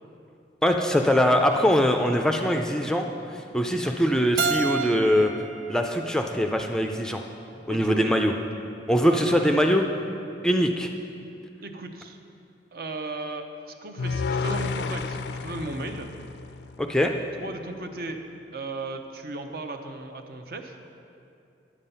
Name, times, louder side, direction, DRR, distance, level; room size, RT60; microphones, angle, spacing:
voice 1, 0.6-5.3 5.7-7.2 7.7-8.3 8.9-9.8 10.4-10.9 16.8-17.1, equal, 5° left, 4 dB, 0.4 m, -22 dB
Keyboard (musical), 4.4-7.2, right 5 dB, 85° right, 0.5 m, -31 dB
voice 2, 7.7-8.1 8.9-9.6 11.6-12.2 12.7-16.1 17.4-18.2 18.5-20.8, right 2 dB, 55° right, 5 dB, 0.7 m, -36 dB
sound 1, 14.0-17.2, left 4 dB, 75° left, 0.4 m, -31 dB
10.0 x 7.3 x 5.5 m, 2.6 s
head